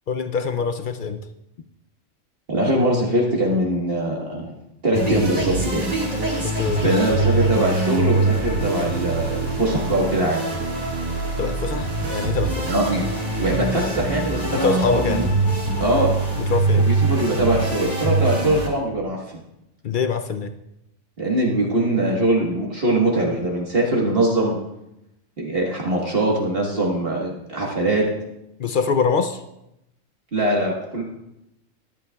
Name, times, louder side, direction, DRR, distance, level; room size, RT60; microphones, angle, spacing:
voice 1, 0.1-1.2 6.4-7.1 11.4-12.7 14.5-15.2 16.4-16.9 19.8-20.5 28.6-29.4, left 5 dB, 65° left, 8 dB, 0.5 m, -24 dB
voice 2, 2.5-4.5 4.8-5.8 6.8-10.4 12.7-13.0 13.4-15.3 15.8-16.1 16.7-19.2 21.2-24.6 25.4-28.0 30.3-31.0, right 1 dB, 50° right, -2 dB, 1.6 m, -22 dB
sound 1, 4.9-18.7, right 3 dB, 30° right, 1.8 m, -23 dB
12.5 x 11.5 x 2.3 m, 0.86 s
omnidirectional pair, 1.4 m